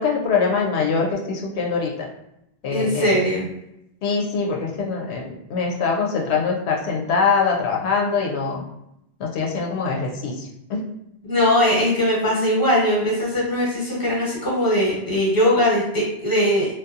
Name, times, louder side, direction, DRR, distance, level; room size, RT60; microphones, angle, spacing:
voice 1, 0.0-2.1 2.6-3.2 4.0-8.6 9.2-10.8, left 5 dB, 85° left, -1 dB, 0.8 m, -23 dB
voice 2, 2.7-3.4 11.2-16.7, equal, 20° left, -6 dB, 1.0 m, -20 dB
2.7 x 2.2 x 2.4 m, 0.82 s
omnidirectional pair, 1.1 m